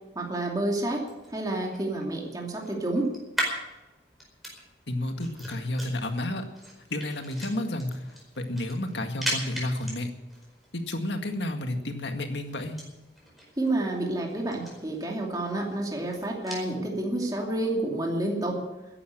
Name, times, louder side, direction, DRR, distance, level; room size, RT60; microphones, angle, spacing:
voice 1, 0.1-1.1 1.3-3.1 13.6-18.6, right 1 dB, 20° right, -1 dB, 2.7 m, -29 dB
sound 1, 0.9-16.7, equal, ahead, 4.8 m, -40 dB
voice 2, 4.9-6.5 6.9-8.1 8.4-10.1 10.7-12.8, left 1 dB, 75° left, 5 dB, 1.9 m, -31 dB
14.0 x 11.0 x 7.9 m, 1.0 s
head